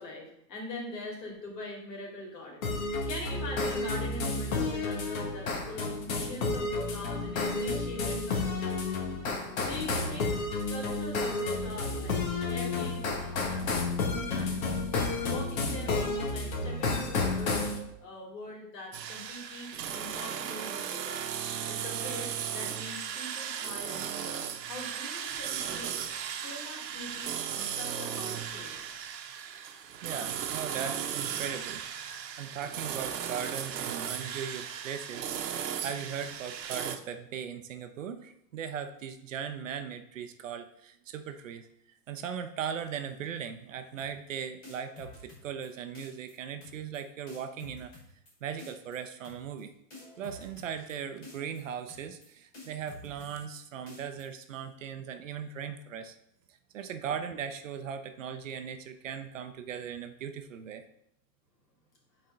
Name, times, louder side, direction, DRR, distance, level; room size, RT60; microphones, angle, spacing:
voice 1, 0.0-8.5 9.7-14.8 15.3-17.7 18.0-21.2 21.7-25.9 26.2-28.9, left 1 dB, 75° left, -1 dB, 2.7 m, -43 dB
sound 1, 2.6-17.8, left 3 dB, 55° left, 1.5 m, -31 dB
sound 2, 18.9-37.0, right 9 dB, 80° right, 0.9 m, -36 dB
voice 2, 30.0-35.3 35.8-41.7 42.1-47.9 48.4-49.7 50.2-56.2 56.7-60.8, right 7 dB, 50° right, 8 dB, 0.6 m, -38 dB
sound 3, 44.0-44.3 44.6-45.7 46.0-46.3 46.6-47.0 47.3-48.3 48.6-49.0 49.2-49.6 49.9-50.9 51.2-51.6 51.9-52.3 52.5-53.6 53.9-54.2, left 3 dB, 20° left, 1.2 m, -49 dB
7.9 x 4.3 x 3.8 m, 0.76 s
supercardioid pair, 175°, 49 cm